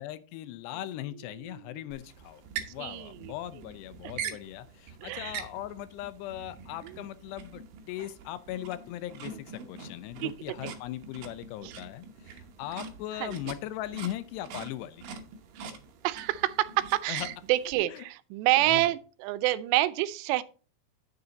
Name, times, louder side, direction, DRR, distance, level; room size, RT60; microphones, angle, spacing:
voice 1, 0.0-2.4 2.7-15.0 17.1-17.3 17.9-18.1 18.6-18.9, left 13 dB, 85° left, 2.8 m, -39 dB
sound 1, 1.9-17.7, right 6 dB, 70° right, 2.3 m, -44 dB
voice 2, 2.8-3.1 4.3-4.4 5.0-5.4 10.2-10.3 11.6-11.7 13.2-13.4 16.0-20.4, right 16 dB, 85° right, 2.7 m, -27 dB
9.6 x 6.8 x 3.9 m
omnidirectional pair, 4.9 m